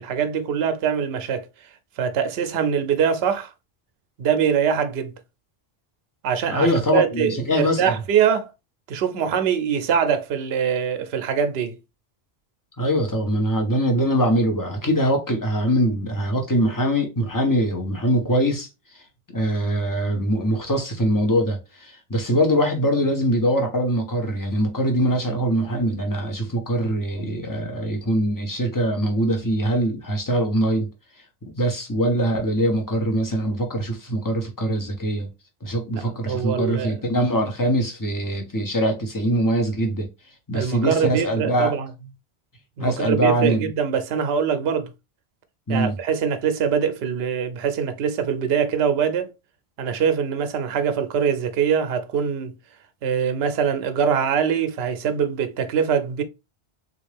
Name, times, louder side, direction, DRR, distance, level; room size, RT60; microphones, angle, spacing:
voice 1, 0.0-1.5 2.0-3.5 4.2-5.1 6.2-8.5 8.9-11.8 35.9-37.0 40.5-41.9 42.8-44.9 45.7-49.3 49.8-52.5 53.0-56.2, right 7 dB, 75° right, 0.8 m, -23 dB
voice 2, 6.4-7.9 12.8-18.7 18.9-19.0 19.3-30.9 31.5-35.3 35.6-40.1 40.5-41.8 42.8-43.7 45.7-46.0, equal, 20° left, 0.8 m, -23 dB
3.6 x 2.4 x 3.2 m
omnidirectional pair, 1.1 m